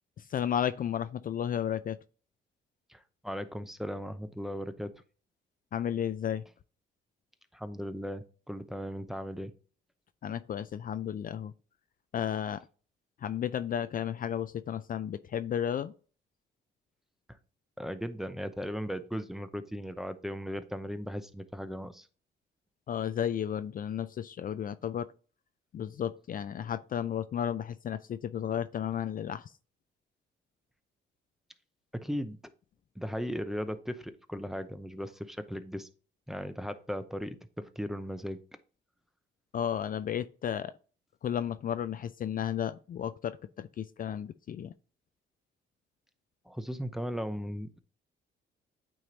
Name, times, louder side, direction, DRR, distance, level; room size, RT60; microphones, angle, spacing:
voice 1, 0.2-2.0 5.7-6.4 10.2-11.5 12.1-12.6 13.2-15.9 22.9-25.1 25.7-29.5 39.5-40.7 41.2-44.7, left 9 dB, 45° left, 0.4 m, -33 dB
voice 2, 2.9-4.9 7.5-9.5 17.8-22.1 31.9-32.4 33.0-35.9 36.3-38.4 46.5-47.8, equal, ahead, 0.7 m, -37 dB
8.8 x 3.1 x 3.9 m
cardioid pair, 90°, 20 cm